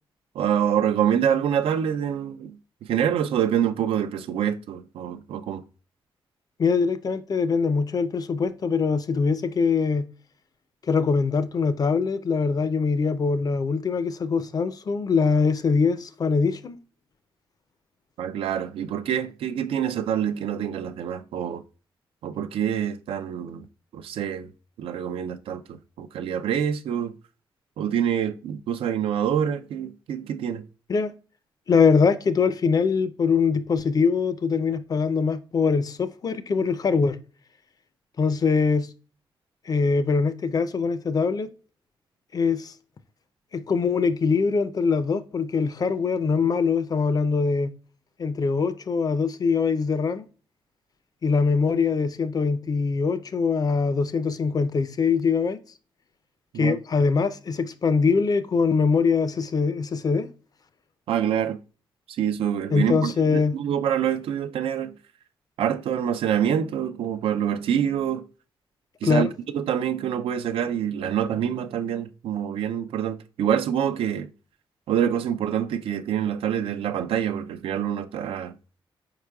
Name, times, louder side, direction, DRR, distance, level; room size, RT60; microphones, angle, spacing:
voice 1, 0.4-2.5 2.9-5.6 18.2-21.6 22.2-23.6 23.9-24.5 24.8-25.6 26.0-27.1 27.8-30.6 56.5-56.8 61.1-61.6 62.2-64.9 65.6-68.2 69.0-69.3 69.5-74.3 74.9-78.5, right 9 dB, 85° right, 0.4 m, -26 dB
voice 2, 6.6-10.1 10.9-16.8 30.9-31.1 31.7-37.2 38.2-38.9 39.7-41.5 42.3-42.7 43.5-47.7 48.2-50.2 51.2-55.6 56.6-60.3 62.7-63.6 69.0-69.3, left 5 dB, 45° left, 0.4 m, -23 dB
4.8 x 4.6 x 2.2 m
cardioid pair, 80°, 9 cm